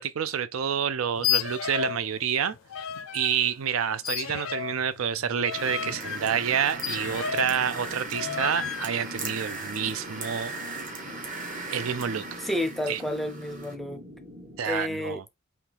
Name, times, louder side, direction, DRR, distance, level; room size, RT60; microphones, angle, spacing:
voice 1, 0.0-2.6 3.1-10.5 11.7-12.4 12.9-13.0 14.6-15.2, right 8 dB, 75° right, 0.4 m, -28 dB
sound 1, 1.1-2.0 2.3-3.4 4.0-7.6 8.1-8.9, left 10 dB, 65° left, 0.5 m, -32 dB
sound 2, 5.5-13.7, right 3 dB, 40° right, 1.0 m, -38 dB
sound 3, 5.5-14.6, left 1 dB, 55° right, 2.1 m, -44 dB
voice 2, 12.4-14.0 14.6-15.2, left 1 dB, ahead, 0.5 m, -31 dB
5.7 x 2.3 x 3.4 m
head